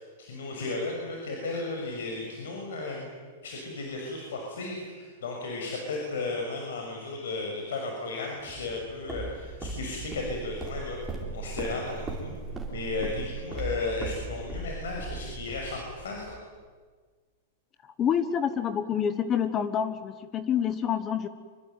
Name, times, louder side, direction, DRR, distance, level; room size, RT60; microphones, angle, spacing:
voice 1, 0.0-3.1 3.4-16.4, left 3 dB, 90° left, 1 dB, 6.6 m, -34 dB
Walk footsteps, 8.5-16.4, right 3 dB, 5° right, 4.1 m, -38 dB
voice 2, 18.0-21.3, left 8 dB, 20° left, 12 dB, 1.1 m, -27 dB
26.0 x 24.5 x 9.3 m, 1.5 s
supercardioid pair, 170°, 0 cm